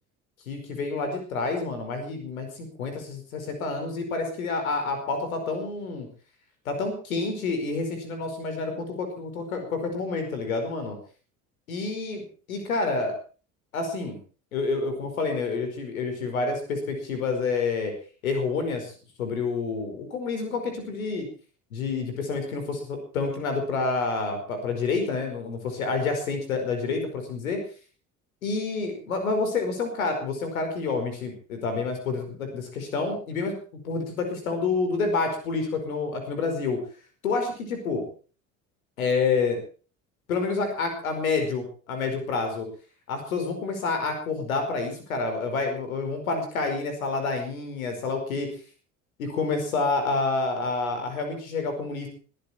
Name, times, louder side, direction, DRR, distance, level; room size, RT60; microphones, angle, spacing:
voice 1, 0.5-6.1 6.7-11.0 11.7-13.2 13.7-14.2 14.5-17.9 18.2-18.9 19.2-21.3 21.7-27.6 28.4-33.5 33.8-36.8 37.2-38.0 39.0-39.6 40.3-42.7 43.1-48.5 49.2-52.1, left 4 dB, 85° left, 6 dB, 5.1 m, -28 dB
22.0 x 14.5 x 4.4 m, 0.39 s
hypercardioid pair, 65°, 41 cm